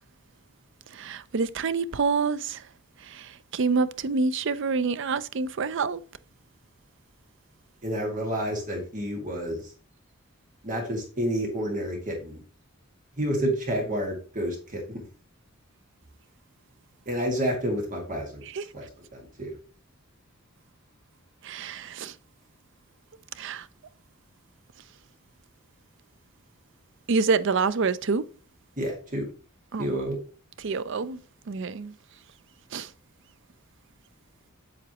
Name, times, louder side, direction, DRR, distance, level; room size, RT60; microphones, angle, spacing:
voice 1, 0.9-2.6 3.1-6.0 18.6-18.7 21.4-22.1 23.4-23.6 27.1-28.3 29.7-29.9 30.6-31.2 31.5-31.9 32.7-32.9, right 4 dB, 60° right, 0.5 m, -27 dB
voice 2, 7.8-9.7 10.6-12.4 13.2-15.1 17.1-18.4 18.7-19.6 28.8-29.3 29.8-30.2, equal, 40° right, 2.0 m, -29 dB
7.9 x 7.7 x 3.0 m
head